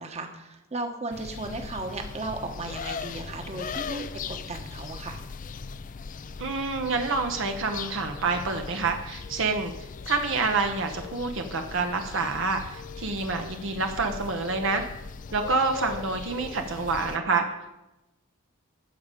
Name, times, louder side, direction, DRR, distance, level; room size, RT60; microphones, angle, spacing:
voice 1, 0.0-5.2, right 2 dB, 30° right, 4 dB, 1.1 m, -35 dB
sound 1, 1.1-17.2, left 5 dB, 35° left, 0.4 m, -39 dB
voice 2, 6.4-9.7 10.1-14.8 15.3-17.4, right 4 dB, 55° right, 5 dB, 0.8 m, -27 dB
12.5 x 4.8 x 8.3 m, 0.98 s
head